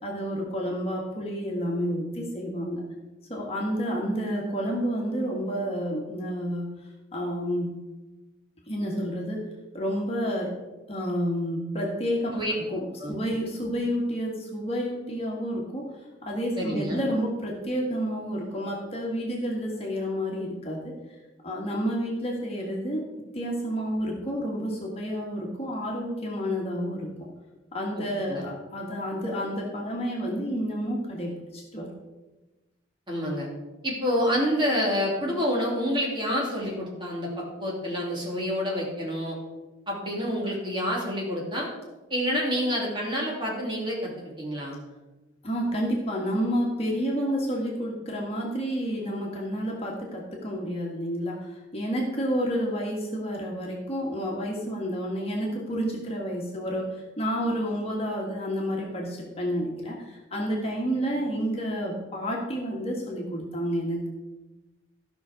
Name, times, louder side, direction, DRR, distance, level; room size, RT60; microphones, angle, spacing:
voice 1, 0.0-2.8 3.3-6.7 7.1-7.8 8.7-9.4 9.7-10.5 10.9-12.4 12.7-15.9 16.2-21.0 21.4-23.0 23.3-27.1 27.7-31.9 45.4-64.1, equal, 30° left, -2 dB, 1.7 m, -30 dB
voice 2, 16.6-17.1 27.9-28.5 33.1-33.5 33.8-39.4 39.9-41.7 42.1-44.8, equal, 25° right, -4 dB, 3.0 m, -28 dB
14.0 x 5.9 x 5.2 m, 1.1 s
head